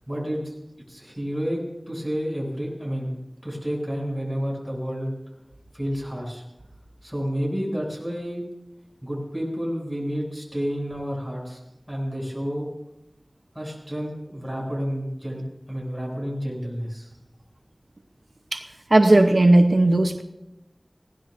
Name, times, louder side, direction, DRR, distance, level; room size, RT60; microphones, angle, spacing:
voice 1, 0.1-0.5 0.9-3.2 3.4-5.1 5.7-6.4 7.0-8.4 9.0-11.6 11.9-12.7 13.5-15.4 15.7-17.1, equal, 5° left, -2 dB, 7.4 m, -30 dB
voice 2, 18.9-20.2, right 2 dB, 80° right, 6 dB, 0.8 m, -16 dB
22.5 x 17.5 x 2.6 m, 0.92 s
wide cardioid pair, 40°, 0 cm